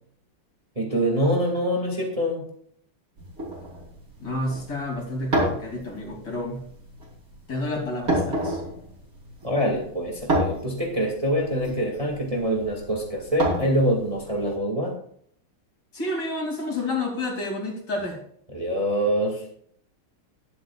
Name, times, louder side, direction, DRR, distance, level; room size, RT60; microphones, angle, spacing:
voice 1, 0.8-2.4 9.4-14.9 18.5-19.4, equal, 15° right, -1 dB, 2.1 m, -25 dB
sound 1, 3.2-14.5, right 1 dB, 40° right, 3.8 m, -30 dB
voice 2, 4.2-6.6 7.5-8.6 15.9-18.2, left 2 dB, 50° left, 0 dB, 3.5 m, -30 dB
20.0 x 8.0 x 2.4 m, 0.62 s
omnidirectional pair, 2.3 m